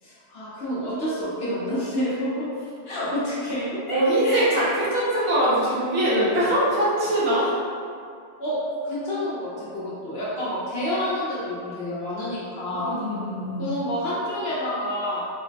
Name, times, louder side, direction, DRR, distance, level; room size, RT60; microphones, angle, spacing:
voice 1, 0.0-2.5 2.8-4.5 8.4-13.0 13.6-15.3, left 1 dB, 60° left, -8 dB, 0.7 m, -28 dB
voice 2, 3.9-7.6 12.7-13.7, right 1 dB, 70° right, -8 dB, 1.2 m, -22 dB
3.7 x 2.0 x 2.6 m, 2.4 s
omnidirectional pair, 1.6 m